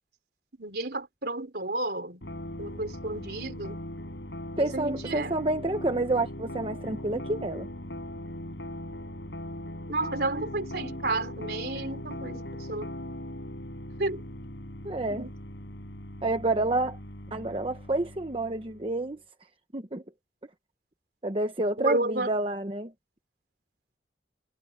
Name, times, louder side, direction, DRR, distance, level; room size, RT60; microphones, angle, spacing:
voice 1, 0.6-2.2 2.6-3.8 4.6-5.3 9.9-12.9 14.0-14.2 15.1-15.3 21.8-22.3, right 2 dB, 65° right, 4.0 m, -32 dB
sound 1, 2.2-19.0, left 1 dB, 80° left, 6.0 m, -39 dB
voice 2, 4.6-7.7 14.8-15.3 16.2-17.0 17.3-19.2 19.7-20.0 21.2-22.9, right 2 dB, 30° right, 1.0 m, -29 dB
head